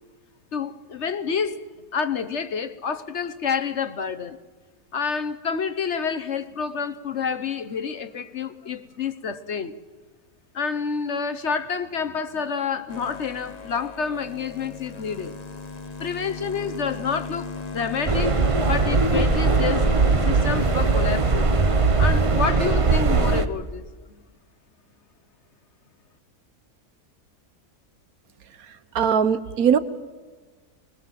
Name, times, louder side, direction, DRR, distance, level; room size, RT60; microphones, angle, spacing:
voice 1, 0.5-1.6 1.9-4.4 4.9-9.7 10.5-15.4 16.0-19.9 20.2-21.5 22.0-23.8, left 6 dB, 50° left, 1.1 m, -28 dB
sound 1, 12.9-22.3, left 4 dB, 30° left, 1.0 m, -35 dB
sound 2, 18.1-23.5, right 4 dB, 30° right, 0.7 m, -20 dB
voice 2, 28.9-29.8, right 7 dB, 70° right, 1.5 m, -20 dB
23.5 x 21.5 x 7.6 m
omnidirectional pair, 1.6 m